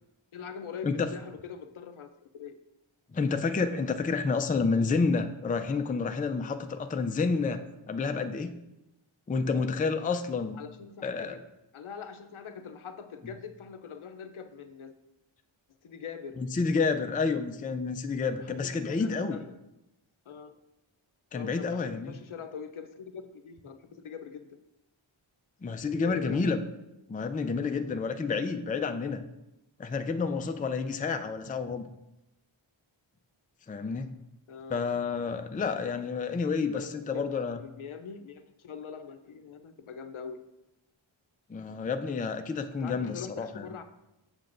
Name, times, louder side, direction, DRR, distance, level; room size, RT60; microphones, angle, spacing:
voice 1, 0.3-2.1 2.3-2.6 10.5-11.4 11.7-14.9 15.8-16.4 18.4-19.6 20.3-20.5 21.3-24.6 25.9-26.5 34.5-34.8 36.7-37.3 37.5-40.4 42.8-43.8, left 6 dB, 80° left, 9 dB, 0.6 m, -43 dB
voice 2, 3.1-7.6 7.9-8.6 9.3-10.6 11.0-11.4 16.4-19.4 21.3-22.2 25.6-26.6 27.1-29.2 29.8-31.9 33.7-34.1 34.7-37.6 41.5-43.7, left 4 dB, 20° left, 8 dB, 0.3 m, -29 dB
7.6 x 6.5 x 2.5 m, 0.92 s
wide cardioid pair, 70°, 48 cm